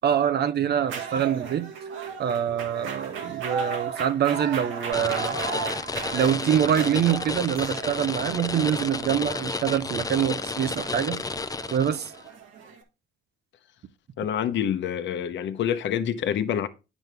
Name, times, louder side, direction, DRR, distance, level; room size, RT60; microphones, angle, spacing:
voice 1, 0.0-1.7 2.2-5.4 6.1-11.2 11.7-12.1, right 9 dB, 55° right, 0.8 m, -25 dB
sound 1, 0.8-12.8, right 5 dB, 80° right, 1.8 m, -36 dB
sound 2, 4.9-12.2, left 4 dB, 20° left, 0.5 m, -31 dB
voice 2, 14.2-16.7, left 9 dB, 70° left, 0.8 m, -27 dB
9.2 x 6.2 x 3.4 m
cardioid pair, 90°, 20 cm